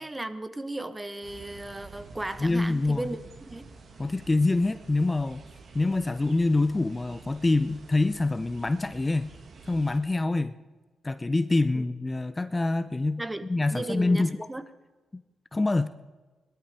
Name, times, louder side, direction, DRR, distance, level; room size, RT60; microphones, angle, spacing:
voice 1, 0.0-3.2 3.5-3.7 11.7-11.8 13.2-13.4 13.7-14.6, right 2 dB, 20° right, 11 dB, 1.2 m, -35 dB
sound 1, 1.2-10.0, right 4 dB, 60° right, 2.2 m, -49 dB
voice 2, 2.4-3.1 4.0-5.4 5.7-9.3 9.7-10.5 11.0-13.2 13.5-14.5 15.1-15.2 15.5-15.9, left 2 dB, 25° left, 13 dB, 0.6 m, -25 dB
18.5 x 12.5 x 5.0 m, 1.3 s
supercardioid pair, 50°, 0 cm